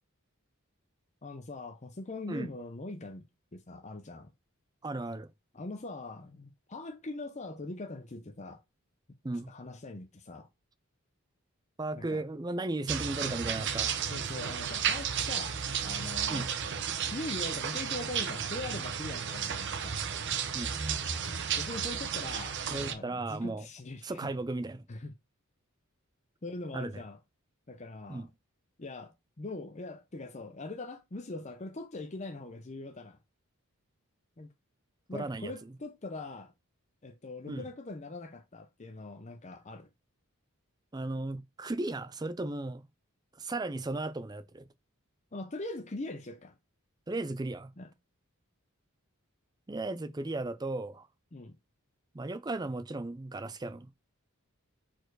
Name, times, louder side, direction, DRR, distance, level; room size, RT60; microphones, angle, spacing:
voice 1, 1.2-3.3 3.5-4.3 5.5-8.6 9.5-10.5 11.9-12.2 14.1-16.5 17.1-20.0 21.3-24.3 24.9-25.1 26.4-27.2 27.7-28.3 28.8-33.2 34.4-34.5 35.1-36.5 37.0-39.9 45.3-46.5 47.8-47.9 51.3-51.5, left 2 dB, 30° left, 0.7 m, -42 dB
voice 2, 4.8-5.3 9.2-9.5 11.8-14.0 16.3-16.5 20.5-20.8 22.7-23.7 24.0-24.8 26.7-27.0 28.1-28.3 35.1-35.7 37.5-37.7 40.9-42.8 43.4-44.7 47.1-47.7 49.7-51.1 52.1-53.9, right 2 dB, 20° right, 0.5 m, -35 dB
sound 1, 12.9-22.9, right 7 dB, 55° right, 0.8 m, -33 dB
4.6 x 4.5 x 4.6 m
head